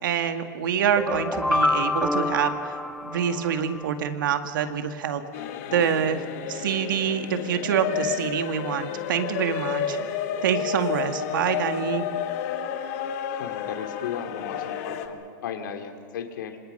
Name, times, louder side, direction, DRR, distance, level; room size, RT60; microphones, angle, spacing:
voice 1, 0.0-2.7 3.0-5.2 5.7-6.2 6.5-10.0 10.4-12.1, right 8 dB, 80° right, 7 dB, 2.1 m, -26 dB
sound 1, 0.8-3.9, left 2 dB, ahead, 0.6 m, -27 dB
sound 2, 5.3-15.1, left 8 dB, 50° left, 1.8 m, -31 dB
voice 2, 13.3-16.6, left 7 dB, 75° left, 6 dB, 3.1 m, -35 dB
26.5 x 26.5 x 5.7 m, 2.2 s
supercardioid pair, 160°, 11 cm